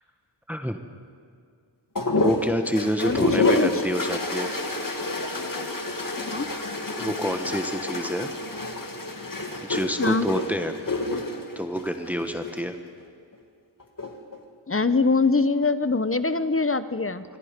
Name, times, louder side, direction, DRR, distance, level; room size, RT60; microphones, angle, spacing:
voice 1, 0.5-0.8 2.1-4.5 7.0-8.3 9.6-10.7 11.5-12.8, equal, 5° right, 6 dB, 1.3 m, -28 dB
sound 1, 1.9-12.6 13.8-14.4, left 2 dB, 45° left, 2.1 m, -28 dB
voice 2, 3.0-3.7 6.2-6.5 10.0-10.3 14.7-17.2, left 3 dB, 30° left, 13 dB, 0.8 m, -23 dB
26.5 x 22.5 x 5.2 m, 2.3 s
wide cardioid pair, 55°, 47 cm